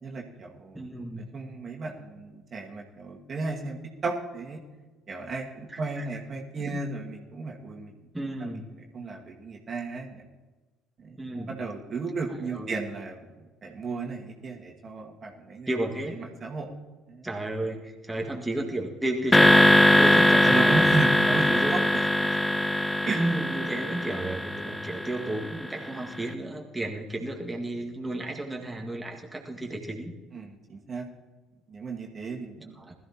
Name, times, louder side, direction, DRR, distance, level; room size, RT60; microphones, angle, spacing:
voice 1, 0.0-0.8 1.2-4.6 5.1-7.9 8.4-8.5 8.9-10.3 11.0-15.7 16.1-16.7 17.1-17.2 20.4-21.8 23.1-23.2 30.3-31.0 31.7-32.9, right 3 dB, 40° right, 0 dB, 2.1 m, -34 dB
voice 2, 0.7-1.3 5.7-6.1 6.6-6.8 8.1-8.7 11.2-11.6 12.4-12.7 15.7-16.2 17.2-20.9 21.3-22.4 23.1-30.1 32.8-32.9, right 1 dB, 10° right, 0 dB, 1.9 m, -33 dB
sound 1, 19.3-25.7, left 1 dB, 15° left, 0.7 m, -21 dB
20.5 x 13.5 x 3.0 m, 1.3 s
figure-of-eight pair, 55°, 0 cm